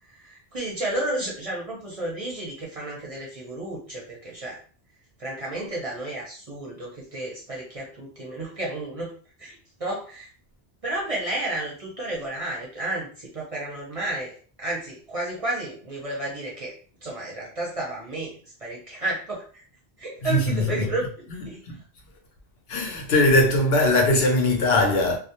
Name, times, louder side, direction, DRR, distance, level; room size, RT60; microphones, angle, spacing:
voice 1, 0.1-4.6 5.2-9.1 9.4-10.3 10.8-14.3 14.6-16.7 17.0-19.6 20.0-21.6, right 2 dB, 40° right, 0.6 m, -32 dB
voice 2, 20.2-20.9 21.3-21.8 22.7-25.2, left 1 dB, 70° left, 0.8 m, -21 dB
2.3 x 2.0 x 2.8 m
omnidirectional pair, 1.1 m